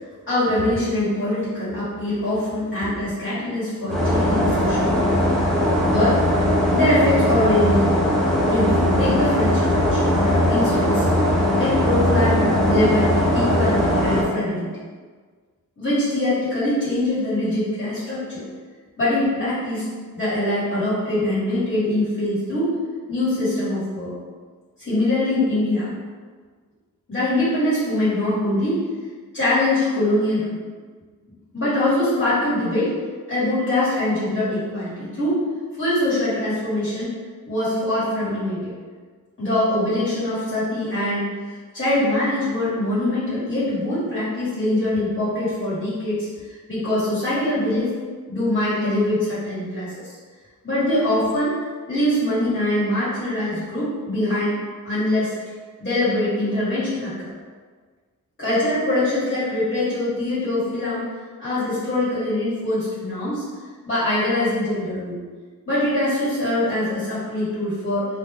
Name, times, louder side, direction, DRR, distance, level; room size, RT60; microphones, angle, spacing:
voice 1, 0.3-5.1 5.8-6.2 6.7-7.9 8.5-11.1 11.6-14.7 15.8-18.4 19.0-19.8 20.1-22.7 23.1-24.1 24.8-25.9 27.1-28.8 29.3-30.6 31.5-32.9 33.3-35.4 35.8-37.1 37.4-38.7 39.4-41.3 41.7-46.3 46.7-48.0 48.3-50.2 50.6-51.5 51.9-54.5 54.8-55.3 55.8-57.3 58.4-61.0 61.4-63.4 63.8-65.2 65.7-68.1, left 1 dB, 35° left, -12 dB, 1.4 m, -23 dB
sound 1, 3.9-14.2, left 1 dB, ahead, 0.4 m, -19 dB
2.4 x 2.2 x 3.3 m, 1.5 s
wide cardioid pair, 150°, 35 cm